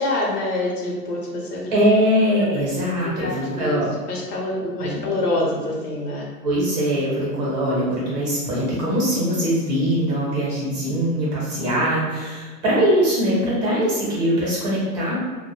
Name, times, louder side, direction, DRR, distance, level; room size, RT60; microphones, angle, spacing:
voice 1, 0.0-1.7 3.0-3.8 4.1-6.3 11.6-11.7, left 2 dB, 70° left, -2 dB, 0.9 m, -26 dB
voice 2, 1.7-3.9 4.8-5.1 6.4-15.2, equal, 25° right, -6 dB, 0.7 m, -22 dB
2.2 x 2.1 x 2.9 m, 1.3 s
hypercardioid pair, 155°, 47 cm